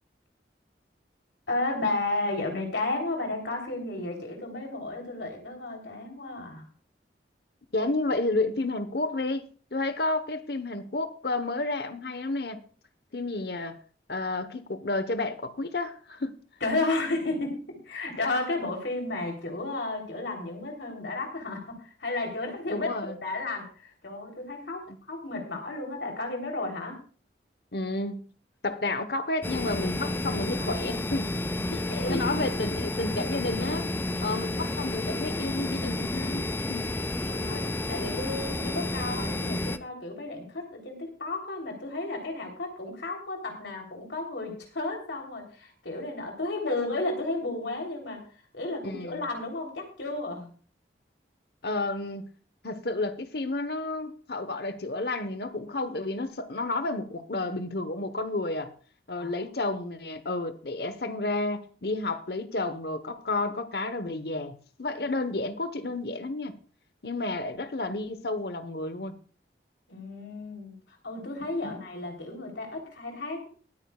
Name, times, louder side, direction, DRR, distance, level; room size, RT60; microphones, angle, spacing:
voice 1, 1.5-6.7 16.6-27.0 31.9-32.4 37.3-48.2 48.5-50.5 59.2-59.3 69.9-73.5, left 2 dB, 80° left, 3.5 m, -33 dB
voice 2, 7.7-12.6 13.1-13.8 14.1-16.4 22.7-23.2 24.9-25.0 27.7-28.2 28.6-31.3 31.7-33.9 34.2-37.0 48.8-49.3 51.6-52.2 52.6-58.7 59.1-66.6 67.0-69.1 71.6-71.8, left 2 dB, 60° left, 1.1 m, -31 dB
sound 1, 29.4-39.8, left 1 dB, 10° left, 0.4 m, -31 dB
22.5 x 9.3 x 2.4 m
head